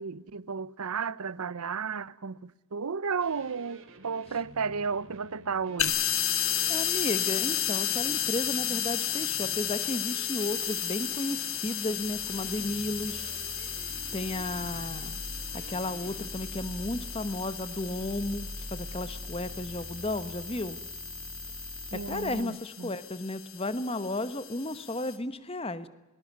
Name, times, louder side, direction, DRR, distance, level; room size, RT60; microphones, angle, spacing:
voice 1, 0.0-6.0 21.9-22.9, right 5 dB, 90° right, 0.7 m, -33 dB
sound 1, 3.2-16.3, right 2 dB, 65° right, 2.7 m, -52 dB
sound 2, 5.8-25.1, left 10 dB, 65° left, 2.2 m, -34 dB
voice 2, 6.7-13.3 14.1-15.1 15.7-20.8 21.9-25.9, left 2 dB, 25° left, 1.1 m, -33 dB
sound 3, 10.4-22.4, left 1 dB, 5° left, 1.4 m, -41 dB
22.0 x 20.0 x 9.5 m
head